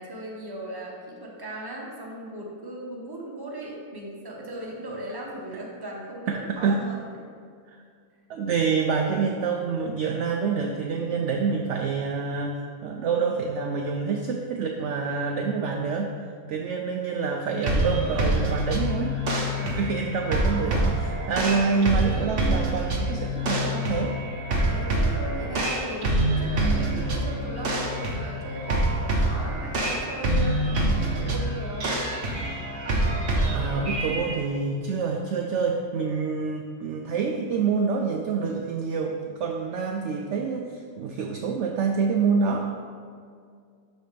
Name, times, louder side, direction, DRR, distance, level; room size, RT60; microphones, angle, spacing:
voice 1, 0.0-7.0 19.5-19.9 20.6-20.8 24.7-32.0, right 1 dB, 15° right, -2 dB, 0.9 m, -38 dB
voice 2, 6.3-6.8 8.3-16.1 16.5-19.2 19.6-24.2 33.5-42.7, right 5 dB, 70° right, 2 dB, 0.7 m, -27 dB
sound 1, 17.6-34.3, right 1 dB, 45° right, 0.9 m, -26 dB
12.0 x 4.1 x 3.4 m, 2.2 s
omnidirectional pair, 1.7 m